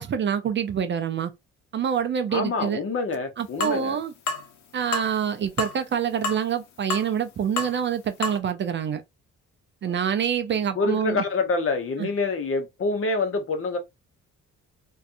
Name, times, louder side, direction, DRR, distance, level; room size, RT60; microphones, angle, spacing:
voice 1, 0.0-1.3 1.7-2.8 3.4-4.1 4.7-9.0 9.8-11.2 12.0-12.1, right 8 dB, 40° right, 0.4 m, -26 dB
voice 2, 2.3-4.0 9.8-10.0 10.7-13.8, left 3 dB, 45° left, 0.8 m, -26 dB
sound 1, 3.6-3.8 4.3-4.5 4.9-5.1 5.6-5.8 6.2-6.4 6.9-7.1 7.6-7.8 8.2-8.4, left 3 dB, 70° left, 0.7 m, -28 dB
2.5 x 2.3 x 2.5 m
cardioid pair, 90°, 30 cm